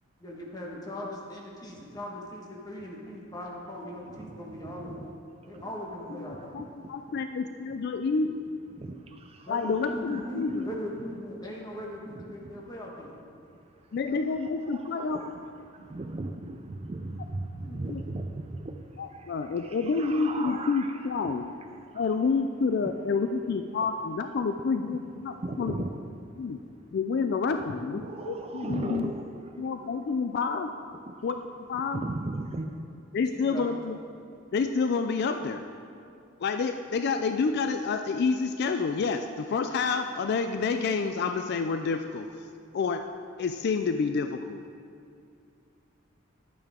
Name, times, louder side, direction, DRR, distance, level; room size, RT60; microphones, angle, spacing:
voice 1, 0.2-4.9 5.5-6.5 9.5-13.1 17.6-17.9 33.3-33.7, left 1 dB, 20° left, -2 dB, 1.4 m, -39 dB
voice 2, 4.0-5.1 5.5-5.8 6.0-7.3 7.7-8.0 8.7-11.2 12.0-13.0 13.5-14.0 14.3-22.1 22.8-22.9 23.2-23.6 25.3-26.6 27.6-30.0 30.9-31.1 31.9-32.7, right 2 dB, 30° right, 5 dB, 0.4 m, -39 dB
voice 3, 6.1-6.6 6.9-8.4 9.5-10.7 13.9-15.2 17.9-18.0 19.0-21.4 21.9-25.7 26.4-26.6 26.9-29.1 29.6-30.7 31.2-31.4 31.7-32.0 33.1-34.0 34.5-35.6 36.4-42.5 42.7-43.1 43.4-44.6, left 4 dB, 50° left, 7 dB, 0.3 m, -28 dB
11.0 x 8.8 x 3.6 m, 2.4 s
head